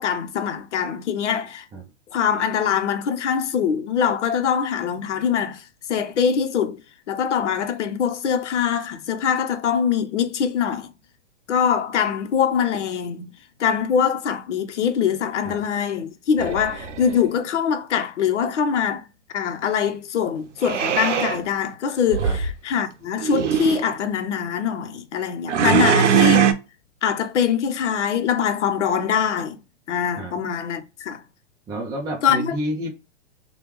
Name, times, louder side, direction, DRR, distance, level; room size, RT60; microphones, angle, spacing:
voice 1, 0.0-1.7 2.1-5.6 5.9-6.8 7.1-10.9 11.5-13.3 13.6-19.0 19.3-26.5 27.0-29.6 29.9-31.2 32.2-32.5, left 7 dB, 75° left, 0.8 m, -23 dB
sound 1, 16.4-17.2 20.6-21.4 22.1-22.5 23.2-23.8 25.5-26.5, right 8 dB, 85° right, 0.6 m, -20 dB
voice 2, 31.7-32.9, right 1 dB, 10° right, 0.5 m, -30 dB
3.3 x 2.3 x 3.0 m
hypercardioid pair, 125°, 35 cm